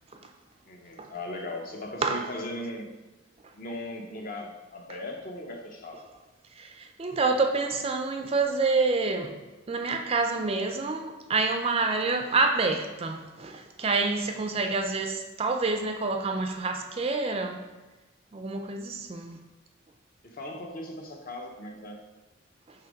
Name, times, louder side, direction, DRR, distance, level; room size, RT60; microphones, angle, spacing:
voice 1, 0.7-2.9 3.5-6.1 20.2-22.0, left 1 dB, 45° left, 3 dB, 0.7 m, -38 dB
voice 2, 6.6-9.4 9.7-17.7 18.3-19.4, right 3 dB, 30° right, 5 dB, 0.4 m, -27 dB
5.7 x 3.4 x 5.0 m, 1.1 s
head